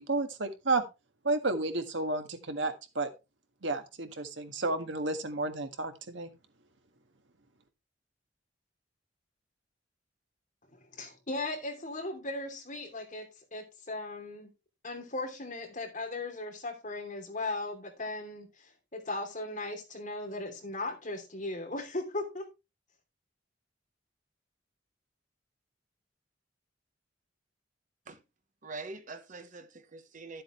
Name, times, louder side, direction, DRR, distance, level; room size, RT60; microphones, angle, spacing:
voice 1, 0.1-0.8 1.2-3.1 3.6-6.3, right 2 dB, 75° right, 1.6 m, -31 dB
voice 2, 10.7-14.5 14.8-22.5, left 2 dB, 45° left, 3.0 m, -37 dB
voice 3, 28.6-30.4, right 3 dB, 45° right, 1.1 m, -44 dB
12.0 x 7.7 x 3.2 m
head